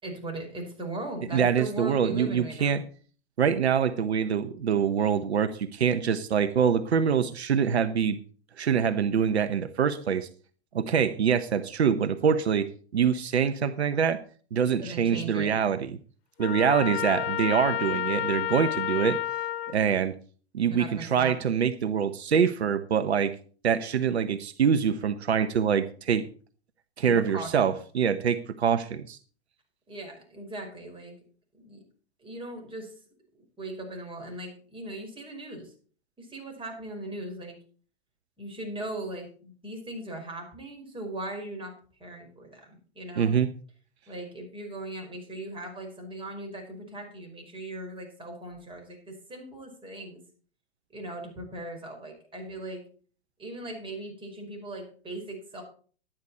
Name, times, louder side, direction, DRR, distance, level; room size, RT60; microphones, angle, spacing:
voice 1, 0.0-2.8 14.8-15.6 20.7-21.3 27.0-27.8 29.9-31.1 31.5-31.8 32.2-32.9 33.6-35.7 36.2-37.5 38.4-41.7 42.0-43.4 44.1-50.2 50.9-52.8 53.4-55.6, right 2 dB, 15° right, 2 dB, 5.3 m, -39 dB
voice 2, 1.3-2.8 3.4-8.2 8.6-10.3 10.7-12.7 12.9-14.2 14.5-16.0 16.4-19.2 19.7-20.1 20.5-23.3 23.6-26.2 27.0-29.2 43.2-43.5, right 7 dB, 85° right, 13 dB, 0.9 m, -25 dB
Trumpet, 16.4-19.8, left 11 dB, 60° left, 1.2 m, -30 dB
12.0 x 9.9 x 4.3 m, 0.42 s
hypercardioid pair, 110°, 32 cm